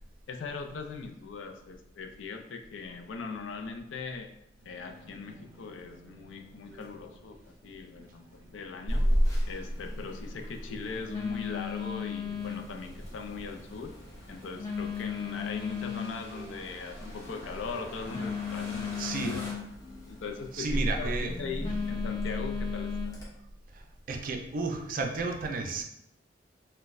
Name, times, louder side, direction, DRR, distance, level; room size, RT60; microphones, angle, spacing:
voice 1, 0.3-4.3 4.7-7.4 7.6-9.0 9.5-13.9 14.3-19.5 20.1-23.1, left 4 dB, 80° left, 5 dB, 0.4 m, -40 dB
sound 1, 4.6-22.2, left 1 dB, 15° right, 1.1 m, -53 dB
Telephone, 8.9-23.2, left 2 dB, 20° left, 0.7 m, -33 dB
sound 2, 12.4-19.5, equal, 55° left, 1.4 m, -48 dB
voice 2, 19.0-19.4 20.5-21.3 23.7-25.8, right 3 dB, 45° right, 3 dB, 0.4 m, -33 dB
3.8 x 2.2 x 2.5 m, 0.79 s
head